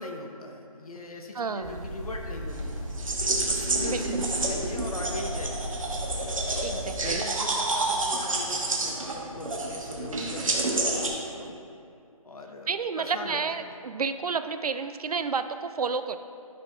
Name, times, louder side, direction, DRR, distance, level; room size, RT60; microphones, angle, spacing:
voice 1, 0.0-2.8 3.4-5.8 6.5-6.7 7.0-11.6 12.2-12.7 13.0-13.4, left 2 dB, 75° left, 2 dB, 1.1 m, -40 dB
voice 2, 1.3-1.9 3.9-4.3 6.6-7.2 12.7-16.2, right 5 dB, 90° right, 11 dB, 0.5 m, -31 dB
sound 1, 1.6-7.1, equal, 25° left, 1.3 m, -36 dB
sound 2, 2.5-11.1, right 2 dB, 65° right, 1.3 m, -29 dB
12.0 x 6.0 x 2.4 m, 2.5 s
figure-of-eight pair, 170°, 19 cm